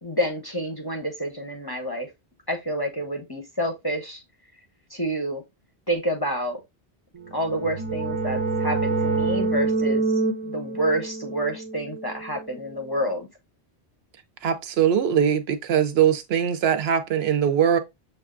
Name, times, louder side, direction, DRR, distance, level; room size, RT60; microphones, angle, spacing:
voice 1, 0.0-2.1 2.5-4.2 4.9-5.4 5.9-6.6 7.3-13.3, right 1 dB, 25° left, 0.6 m, -28 dB
sound 1, 7.3-12.8, right 3 dB, 50° right, 0.4 m, -27 dB
voice 2, 14.4-17.8, right 9 dB, 70° right, 0.8 m, -21 dB
6.6 x 2.4 x 2.4 m
omnidirectional pair, 1.1 m